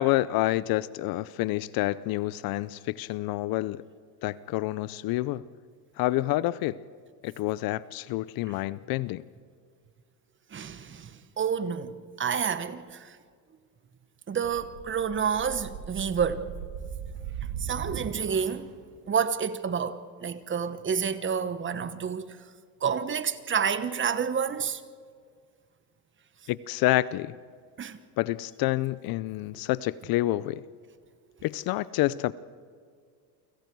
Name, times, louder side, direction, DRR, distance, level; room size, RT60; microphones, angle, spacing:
voice 1, 0.0-3.8 4.2-5.4 6.0-6.8 7.2-9.2 26.5-27.4 28.2-30.6 31.4-32.3, left 17 dB, 45° left, 0.6 m, -28 dB
voice 2, 10.5-11.1 11.4-13.1 14.3-16.5 17.6-18.7 19.1-22.4 22.8-24.8 27.8-28.0, right 7 dB, 25° right, 1.1 m, -29 dB
sound 1, 14.4-18.8, right 8 dB, 55° right, 2.1 m, -38 dB
29.5 x 25.5 x 4.6 m
supercardioid pair, 115°, 49 cm